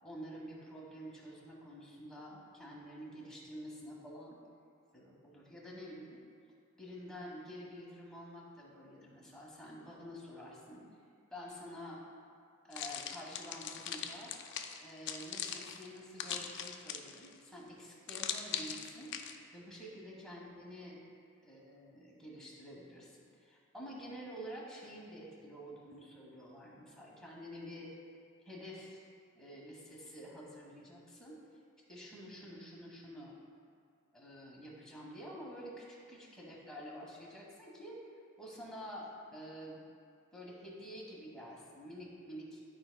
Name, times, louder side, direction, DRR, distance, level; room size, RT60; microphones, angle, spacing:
voice 1, 0.0-4.4 4.9-6.2 6.8-10.8 11.3-12.0 12.6-14.3 14.8-19.1 19.5-21.0 21.4-23.1 23.4-27.9 28.4-29.0 29.3-31.4 31.9-33.3 34.1-38.0 38.4-39.8 40.3-42.6, equal, 5° left, -5 dB, 1.3 m, -49 dB
sound 1, 12.7-17.3 18.1-19.3, left 8 dB, 55° left, 0.4 m, -41 dB
12.5 x 4.6 x 2.3 m, 2.3 s
head